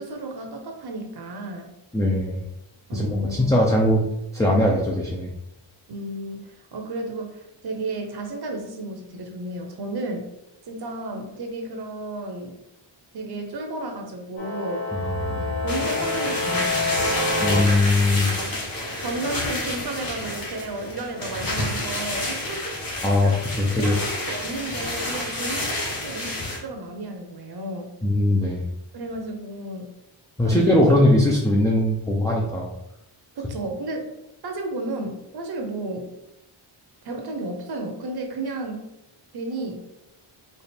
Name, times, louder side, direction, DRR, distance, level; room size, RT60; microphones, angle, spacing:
voice 1, 0.0-1.7 2.9-3.7 5.9-10.3 10.7-12.6 13.1-14.8 15.6-17.3 18.3-18.6 19.0-22.7 23.2-23.4 23.8-27.9 28.9-29.9 30.4-31.0 33.4-34.0 34.4-36.1 37.0-38.9 39.3-39.9, right 2 dB, 50° right, 3 dB, 0.7 m, -33 dB
voice 2, 1.9-2.4 2.9-4.0 4.3-5.3 14.9-15.5 17.4-18.3 23.0-23.9 28.0-28.7 30.4-32.7, left 1 dB, 10° left, -3 dB, 0.3 m, -20 dB
sound 1, 14.4-17.6, left 2 dB, 80° left, 1.4 m, -27 dB
sound 2, 15.7-26.6, left 1 dB, 45° left, 1.2 m, -29 dB
4.2 x 2.4 x 3.3 m, 0.87 s
wide cardioid pair, 145°, 49 cm